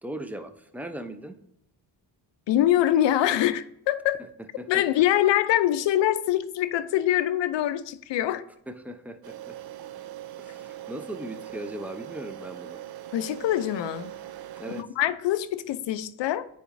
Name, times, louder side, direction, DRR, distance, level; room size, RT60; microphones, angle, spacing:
voice 1, 0.0-1.3 4.6-4.8 8.7-9.6 10.4-12.8 14.6-14.8, right 1 dB, 5° right, 0.6 m, -38 dB
voice 2, 2.5-4.2 4.7-8.4 13.1-14.1 14.8-16.5, left 12 dB, 65° left, 0.6 m, -24 dB
sound 1, 9.2-14.8, right 13 dB, 55° right, 0.5 m, -41 dB
9.4 x 4.3 x 2.6 m
cardioid pair, 70°, 46 cm